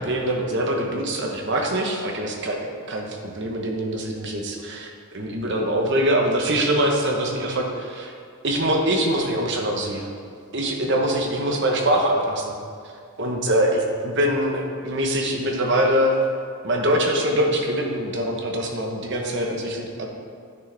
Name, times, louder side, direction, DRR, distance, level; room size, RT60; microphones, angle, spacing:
voice 1, 0.0-2.6 2.9-4.9 5.1-8.1 8.4-10.1 10.5-12.5 13.2-16.1 16.6-20.1, right 1 dB, 55° right, 1 dB, 1.1 m, -23 dB
10.5 x 6.3 x 3.4 m, 2.3 s
head